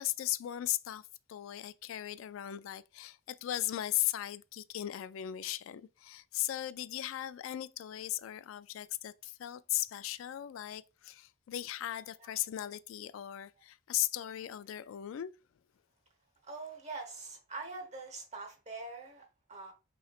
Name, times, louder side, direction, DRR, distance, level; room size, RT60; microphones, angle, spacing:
voice 1, 0.0-15.3, left 13 dB, 85° left, 0.3 m, -37 dB
voice 2, 16.4-19.7, right 3 dB, 35° right, 1.1 m, -44 dB
5.6 x 3.1 x 2.4 m
head